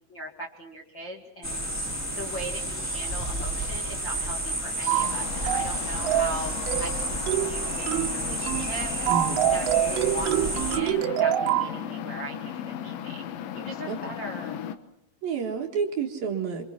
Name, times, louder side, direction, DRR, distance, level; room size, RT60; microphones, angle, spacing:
voice 1, 0.1-1.6 2.1-6.5 6.8-9.1 9.5-13.2 13.5-14.6, right 1 dB, 40° left, -1 dB, 1.8 m, -39 dB
sound 1, 1.4-10.8, right 1 dB, 5° left, 1.9 m, -31 dB
sound 2, 4.9-14.8, left 10 dB, 75° left, 3.4 m, -37 dB
sound 3, 4.9-5.1 5.5-5.8 6.1-6.4 6.7-7.0 7.3-7.6 7.9-8.1 8.5-8.7 9.1-11.7, right 12 dB, 85° right, 3.7 m, -25 dB
voice 2, 9.1-9.4 13.9-14.0 15.2-16.6, right 6 dB, 55° right, 2 dB, 3.3 m, -29 dB
28.5 x 25.5 x 5.9 m, 0.78 s
omnidirectional pair, 5.6 m